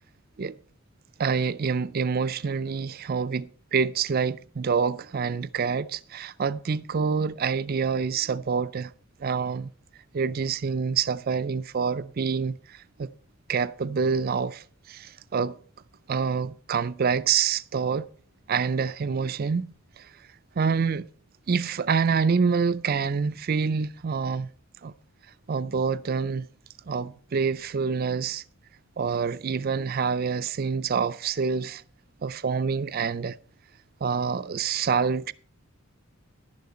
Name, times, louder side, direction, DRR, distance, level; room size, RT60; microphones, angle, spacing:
voice 1, 1.2-8.9 9.2-9.7 10.1-13.1 13.5-15.6 16.1-18.1 18.5-19.7 20.0-20.1 20.6-21.0 21.5-24.5 24.8-24.9 25.5-26.5 26.9-28.4 29.0-31.8 32.2-33.4 34.0-35.3, right 5 dB, 45° right, 0.4 m, -26 dB
11.5 x 10.5 x 4.2 m
head